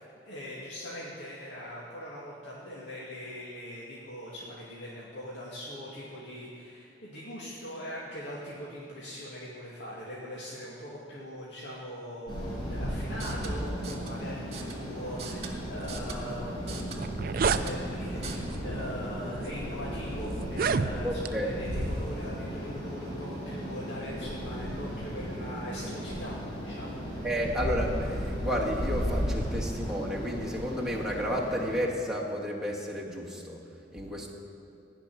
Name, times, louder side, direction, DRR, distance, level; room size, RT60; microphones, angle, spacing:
voice 1, 0.2-17.1 17.5-26.4 26.6-27.3, equal, 85° left, -7 dB, 2.3 m, -41 dB
sound 1, 12.3-31.8, equal, 30° left, 4.4 m, -35 dB
sound 2, 13.1-18.4, right 3 dB, 40° right, 1.7 m, -42 dB
sound 3, 16.5-16.6 16.9-17.7 18.5-18.7 19.4-19.5 20.4-21.3, right 5 dB, 55° right, 0.4 m, -29 dB
voice 2, 21.0-21.6 27.2-33.6 33.9-34.3, equal, 5° right, -3 dB, 1.9 m, -32 dB
17.0 x 5.9 x 9.9 m, 2.5 s
head